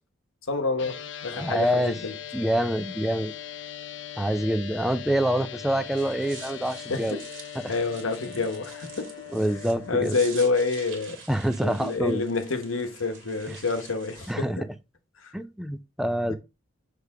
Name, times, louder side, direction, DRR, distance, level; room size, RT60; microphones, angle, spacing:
voice 1, 0.5-2.1 6.9-7.3 7.7-9.1 9.9-11.2 11.6-14.7 15.2-15.3 16.3-16.4, left 4 dB, 90° left, 1.0 m, -28 dB
sound 1, 0.8-10.1, left 10 dB, 60° left, 0.7 m, -40 dB
voice 2, 1.4-1.9 2.3-3.3 4.2-7.2 7.6-7.7 9.3-10.2 11.3-12.2 14.3-14.6 15.3-16.3, equal, ahead, 0.3 m, -26 dB
sound 2, 5.8-14.3, right 5 dB, 70° right, 2.0 m, -47 dB
6.5 x 3.3 x 4.7 m
head